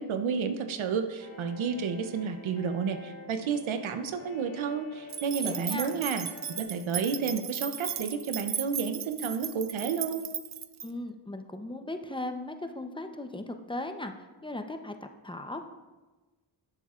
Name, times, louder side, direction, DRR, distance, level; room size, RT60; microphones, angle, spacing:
voice 1, 0.0-10.2, right 6 dB, 80° right, 8 dB, 0.7 m, -31 dB
sound 1, 1.2-6.6, left 2 dB, 80° left, 1.6 m, -48 dB
sound 2, 5.1-10.9, right 8 dB, 40° right, 0.5 m, -36 dB
voice 2, 5.4-5.9 10.8-15.6, left 2 dB, 10° left, 6 dB, 0.7 m, -38 dB
12.0 x 7.2 x 2.4 m, 1.2 s
cardioid pair, 55°, 47 cm